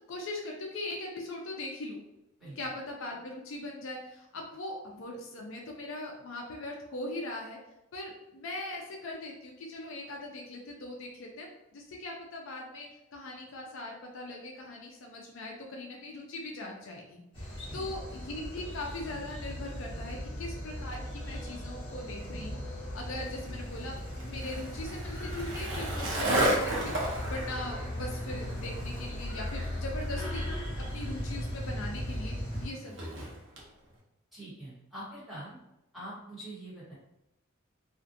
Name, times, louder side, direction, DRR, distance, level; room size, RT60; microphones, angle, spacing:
voice 1, 0.1-2.0 2.6-7.6 7.9-24.0 24.2-30.5 30.9-32.3 32.6-33.1, left 2 dB, 60° left, 0 dB, 0.4 m, -40 dB
sound 1, 17.3-32.6, equal, 25° left, 0.9 m, -38 dB
Skateboard, 23.1-33.7, right 1 dB, 55° right, 0.7 m, -35 dB
voice 2, 34.3-35.6 35.9-36.9, right 1 dB, ahead, -10 dB, 1.0 m, -44 dB
2.5 x 2.3 x 2.5 m, 0.88 s
head